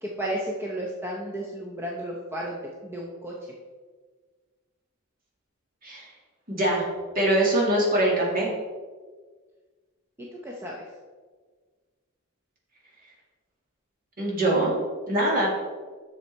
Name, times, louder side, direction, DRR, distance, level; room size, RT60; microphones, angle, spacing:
voice 1, 0.0-3.3 10.2-10.8, right 1 dB, 10° right, -3 dB, 0.7 m, -33 dB
voice 2, 6.5-6.9 7.1-8.5 14.2-14.7 15.1-15.5, right 1 dB, 40° right, -3 dB, 2.2 m, -23 dB
7.0 x 6.5 x 4.6 m, 1.5 s
head